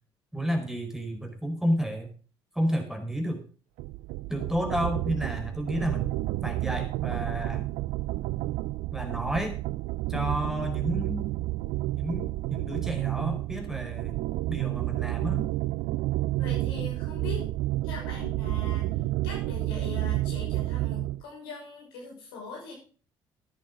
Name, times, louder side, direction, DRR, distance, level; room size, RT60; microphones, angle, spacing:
voice 1, 0.3-2.1 2.5-3.4 4.3-6.1 6.4-7.6 8.9-9.6 10.1-11.3 11.9-14.2 14.5-15.5, equal, 5° right, 4 dB, 4.7 m, -31 dB
sound 1, 3.8-21.2, right 17 dB, 70° right, 0.5 m, -30 dB
voice 2, 16.4-17.5 17.8-18.9 19.2-22.7, left 5 dB, 80° left, -2 dB, 6.1 m, -41 dB
14.5 x 10.0 x 3.9 m, 0.39 s
hypercardioid pair, 50°, 12 cm